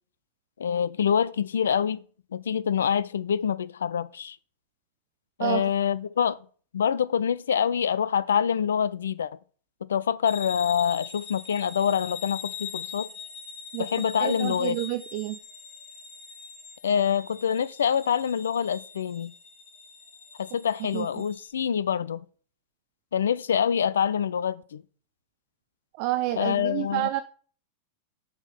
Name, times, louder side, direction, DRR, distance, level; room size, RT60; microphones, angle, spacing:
voice 1, 0.6-2.0 2.3-4.4 5.4-6.4 6.7-9.3 9.9-13.1 13.8-14.8 16.8-19.3 20.4-22.2 23.1-24.8 26.4-27.1, left 8 dB, 65° left, 0.4 m, -26 dB
sound 1, 10.2-21.5, left 7 dB, 50° left, 1.6 m, -42 dB
voice 2, 14.2-15.4 20.9-21.2 26.0-27.2, right 16 dB, 45° right, 0.4 m, -29 dB
8.1 x 3.7 x 5.7 m
figure-of-eight pair, 90°, 0 cm